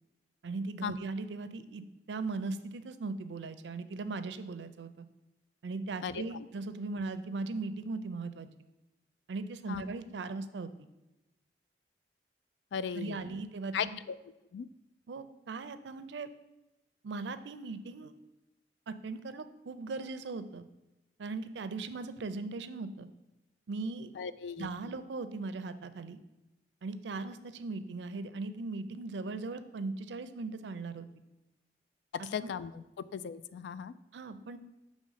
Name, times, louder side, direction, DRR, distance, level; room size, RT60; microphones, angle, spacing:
voice 1, 0.4-1.8 2.1-5.1 5.6-8.5 9.3-10.9 12.9-14.0 15.1-16.3 17.0-18.1 18.9-20.6 21.2-23.1 23.7-24.1 24.6-26.2 26.8-31.1 32.4-32.5 34.1-34.6, right 3 dB, 90° right, 12 dB, 0.5 m, -38 dB
voice 2, 6.0-6.4 9.7-9.8 12.7-13.4 13.7-14.2 14.5-14.7 24.2-24.7 32.1-32.8 33.1-33.9, left 7 dB, 85° left, 15 dB, 0.3 m, -37 dB
6.3 x 3.1 x 5.5 m, 1.0 s
head